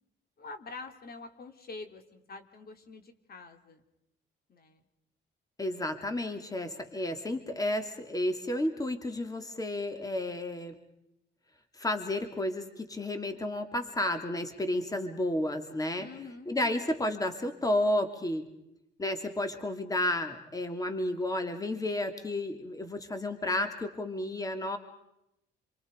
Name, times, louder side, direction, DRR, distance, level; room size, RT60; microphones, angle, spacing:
voice 1, 0.4-3.8 4.5-4.8 16.0-16.9, left 3 dB, 50° left, 6 dB, 2.9 m, -46 dB
voice 2, 5.6-10.7 11.8-16.1 16.5-18.5 19.0-24.8, left 1 dB, 20° left, 7 dB, 2.7 m, -32 dB
29.5 x 24.0 x 5.2 m, 0.83 s
cardioid pair, 90°, 20 cm